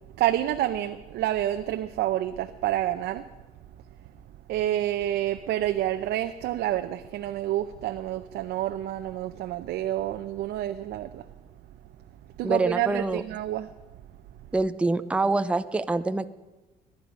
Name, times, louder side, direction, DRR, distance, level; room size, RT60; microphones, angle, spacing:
voice 1, 0.2-3.3 4.5-11.3 12.4-13.7, right 13 dB, 75° right, 0.7 m, -28 dB
voice 2, 12.4-13.2 14.5-16.3, right 3 dB, 5° right, 0.5 m, -25 dB
22.0 x 10.5 x 5.3 m
cardioid pair, 110°, 17 cm